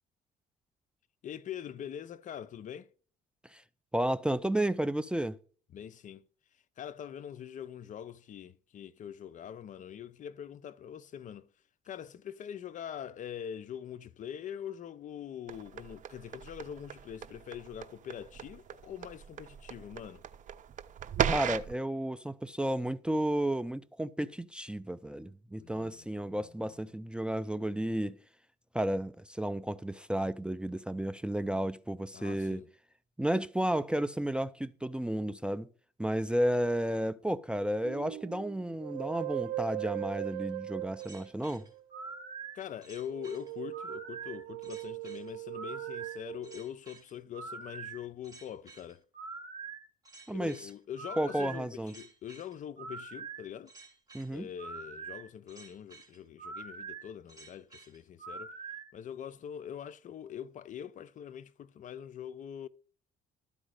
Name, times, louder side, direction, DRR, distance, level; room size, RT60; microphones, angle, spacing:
voice 1, 1.2-2.9 5.7-6.3 6.8-11.5 11.8-20.2 25.6-26.8 32.1-32.7 42.5-49.0 50.3-53.7 54.3-58.6 58.9-62.7, left 9 dB, 50° left, 0.6 m, -43 dB
voice 2, 3.9-5.4 21.3-28.2 28.7-32.6 33.2-35.7 36.0-41.6 50.3-50.7 51.2-51.9 54.1-54.5, right 1 dB, 5° right, 0.4 m, -32 dB
sound 1, 15.5-21.7, right 9 dB, 45° right, 0.8 m, -36 dB
sound 2, 37.8-42.3 43.1-46.6, right 15 dB, 85° right, 0.6 m, -40 dB
sound 3, 41.0-58.9, right 4 dB, 20° right, 3.7 m, -45 dB
13.0 x 4.9 x 6.5 m
cardioid pair, 110°, 17 cm